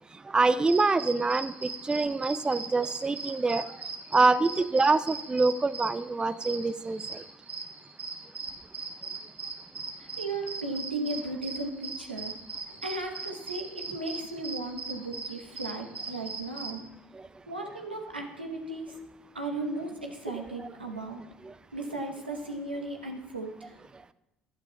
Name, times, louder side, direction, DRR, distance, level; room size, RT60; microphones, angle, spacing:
voice 1, 0.3-3.6 4.1-7.2, right 3 dB, 15° right, 15 dB, 0.4 m, -25 dB
sound 1, 0.7-16.7, right 4 dB, 50° right, 3.0 m, -39 dB
voice 2, 10.0-12.4 12.7-16.8 17.5-19.0 19.3-21.2 21.7-23.8, right 2 dB, 90° right, 2 dB, 1.1 m, -36 dB
11.5 x 11.5 x 2.3 m, 0.92 s
figure-of-eight pair, 55°, 5 cm